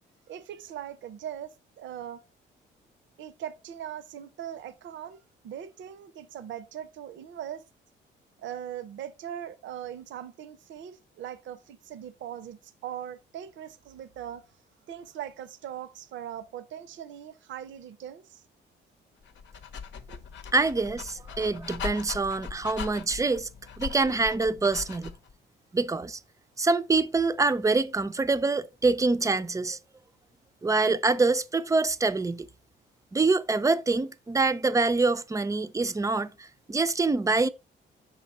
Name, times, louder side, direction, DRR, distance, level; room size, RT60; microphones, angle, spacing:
voice 1, 0.3-2.2 3.2-7.6 8.4-14.4 14.9-18.4 20.1-20.2, right 10 dB, 70° right, 0.6 m, -40 dB
Dog, 19.2-25.3, left 6 dB, 70° left, 0.8 m, -40 dB
voice 2, 20.5-23.5 23.8-25.1 25.7-26.2 26.6-29.8 30.6-32.5 33.1-37.5, right 3 dB, 15° right, 0.4 m, -25 dB
6.3 x 4.0 x 4.1 m
cardioid pair, 90°, 20 cm